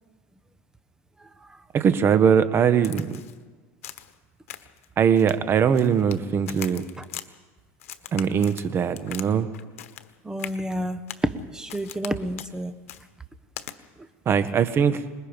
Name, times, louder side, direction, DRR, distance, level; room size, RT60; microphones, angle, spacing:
voice 1, 1.7-3.2 5.0-6.8 8.1-9.5 14.2-15.0, right 7 dB, 30° right, 1.4 m, -21 dB
Crack, 2.8-3.4 3.8-4.1 4.5-4.8 5.2-6.2 6.5-7.3 7.8-9.3 9.5-10.1 10.4-10.6 11.1-11.3 11.7-12.1 12.4-12.5 12.9-13.0 13.6-13.7, left 12 dB, 90° left, 1.3 m, -40 dB
voice 2, 10.2-11.0 11.5-12.7, right 1 dB, 10° right, 1.2 m, -30 dB
26.5 x 21.0 x 5.4 m
supercardioid pair, 120°, 7 cm